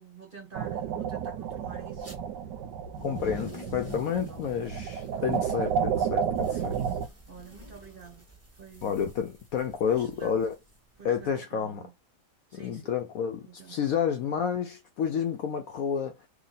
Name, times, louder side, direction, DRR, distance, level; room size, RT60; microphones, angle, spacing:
voice 1, 0.0-2.2 3.0-3.3 3.9-4.4 6.5-7.0 7.3-8.3 8.5-9.1 9.9-10.4 11.0-11.9 12.5-12.9 13.4-13.9, right 6 dB, 40° right, 0.9 m, -49 dB
sound 1, 0.5-7.1, right 7 dB, 80° right, 1.2 m, -31 dB
sound 2, 2.0-2.2 2.8-11.3, right 1 dB, 10° right, 1.2 m, -46 dB
voice 2, 3.0-6.7 8.8-10.5 11.0-11.8 12.5-16.3, left 7 dB, 70° left, 0.9 m, -30 dB
3.0 x 2.8 x 4.0 m
omnidirectional pair, 1.8 m